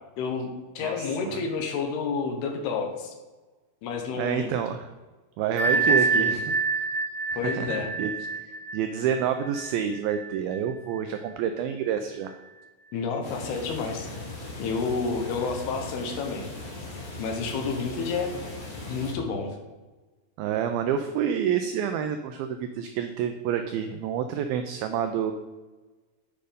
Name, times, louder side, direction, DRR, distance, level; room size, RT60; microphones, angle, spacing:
voice 1, 0.2-0.5 0.8-3.1 3.8-4.5 5.7-6.4 7.4-7.9 12.9-14.1 14.6-16.5 17.2-18.5 18.8-19.6, left 4 dB, 75° left, 3 dB, 2.9 m, -30 dB
voice 2, 0.8-1.4 4.2-4.8 5.4-6.4 6.8-6.9 7.3-8.1 8.4-12.3 20.4-25.3, right 8 dB, 85° right, 7 dB, 2.1 m, -28 dB
Bell, 5.6-11.0, right 4 dB, 55° right, 3.1 m, -27 dB
sound 1, 13.2-19.1, left 2 dB, 40° left, 2.4 m, -39 dB
8.9 x 5.2 x 5.1 m, 1.2 s
omnidirectional pair, 4.8 m